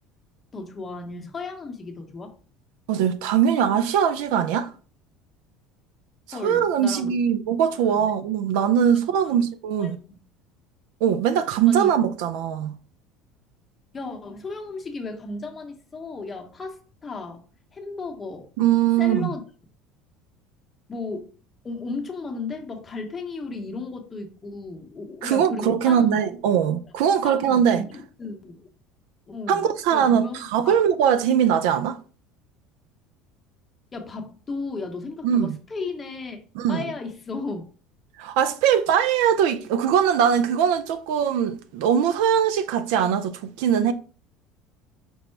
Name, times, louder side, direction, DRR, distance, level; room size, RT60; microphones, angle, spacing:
voice 1, 0.5-2.3 6.3-7.2 7.8-8.1 8.5-8.6 9.8-10.2 11.7-11.9 13.9-17.4 17.7-18.5 19.0-19.4 20.9-21.3 21.6-26.2 27.2-28.7 29.3-30.8 33.9-36.4 36.7-37.6, left 3 dB, 20° left, 0.8 m, -35 dB
voice 2, 2.9-4.7 6.3-10.0 11.0-12.7 18.6-19.3 25.2-27.8 29.5-32.0 35.2-35.6 36.6-36.9 38.2-43.9, right 8 dB, 75° right, 0.4 m, -21 dB
5.3 x 2.0 x 4.4 m
cardioid pair, 145°, 0 cm